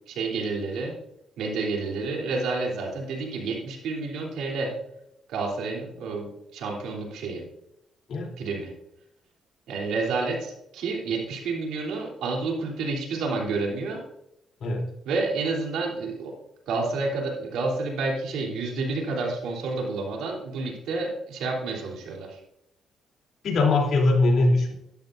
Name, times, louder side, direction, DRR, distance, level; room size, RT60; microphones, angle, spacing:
voice 1, 0.1-0.9 1.4-4.7 5.3-7.4 8.4-8.7 9.7-14.0 15.0-16.3 16.7-22.4, right 3 dB, 85° right, -1 dB, 3.2 m, -29 dB
voice 2, 23.4-24.7, left 2 dB, 65° left, 0 dB, 3.1 m, -21 dB
13.0 x 11.5 x 2.6 m, 0.80 s
cardioid pair, 90°, 0 cm